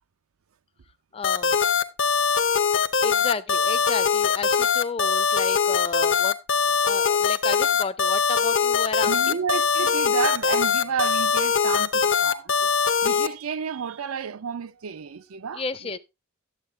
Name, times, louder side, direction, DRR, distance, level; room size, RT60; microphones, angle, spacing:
voice 1, 1.1-1.6 3.0-9.4 15.5-16.0, left 4 dB, 25° left, 0.4 m, -32 dB
sound 1, 1.2-13.3, left 6 dB, 65° left, 0.7 m, -22 dB
voice 2, 9.1-16.0, right 6 dB, 90° right, 0.5 m, -31 dB
11.5 x 7.8 x 3.3 m
head